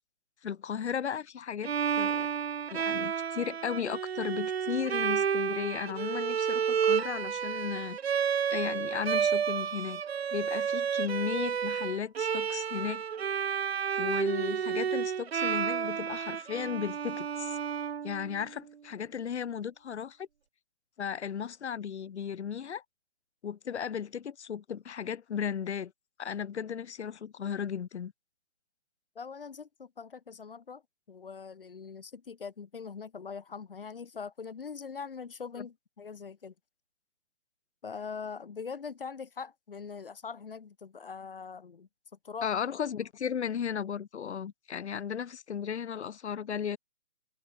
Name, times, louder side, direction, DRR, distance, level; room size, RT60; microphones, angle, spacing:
voice 1, 0.4-2.3 2.7-8.0 8.5-10.0 10.3-13.0 14.0-17.6 18.0-20.3 21.0-22.8 23.4-25.9 26.2-28.1 35.6-35.7 42.4-46.8, left 8 dB, 70° left, 0.7 m, -35 dB
Bowed string instrument, 1.6-18.6, right 7 dB, 60° right, 0.6 m, -31 dB
voice 2, 29.1-30.8 31.1-36.5 37.8-41.9 42.2-42.5, left 5 dB, 50° left, 1.5 m, -42 dB
hypercardioid pair, 175°, 35 cm